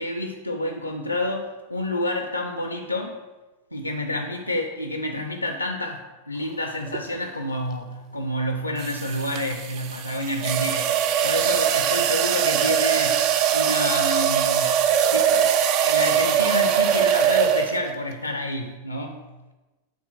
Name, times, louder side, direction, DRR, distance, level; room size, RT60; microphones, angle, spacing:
voice 1, 0.0-3.2 3.7-14.8 15.1-19.2, left 1 dB, 85° left, 4 dB, 0.4 m, -29 dB
sound 1, 6.9-7.1 8.8-18.0, right 9 dB, 40° right, 0.4 m, -22 dB
5.0 x 3.5 x 5.7 m, 1.1 s
figure-of-eight pair, 90°, 0 cm